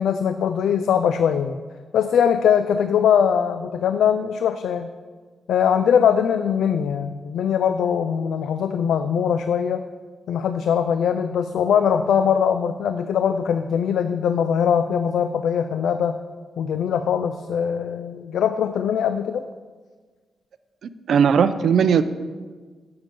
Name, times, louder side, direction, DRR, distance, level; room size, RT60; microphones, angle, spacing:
voice 1, 0.0-1.6 1.9-4.9 5.5-9.8 10.3-16.2 16.6-19.5, left 8 dB, 85° left, 10 dB, 0.4 m, -21 dB
voice 2, 21.1-22.0, right 7 dB, 70° right, 12 dB, 0.5 m, -17 dB
9.5 x 7.0 x 5.3 m, 1.5 s
cardioid pair, 110°, 0 cm